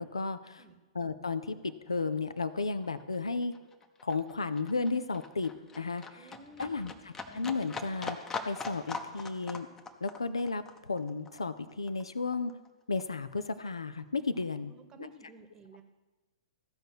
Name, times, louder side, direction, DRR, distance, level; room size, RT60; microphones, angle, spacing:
voice 1, 0.0-0.6 0.9-3.5 4.0-6.3 6.6-8.2 8.5-9.7 10.0-12.5 12.9-15.1, left 4 dB, 80° left, 12 dB, 0.5 m, -34 dB
Livestock farm animals working animals, 1.4-1.5 1.7-12.7 13.0-14.0 14.3-14.4, left 4 dB, 15° left, 0.8 m, -43 dB
voice 2, 6.1-6.9 14.6-15.8, right 1 dB, 25° right, 8 dB, 1.1 m, -53 dB
14.5 x 5.2 x 6.2 m, 1.1 s
figure-of-eight pair, 105°, 3 cm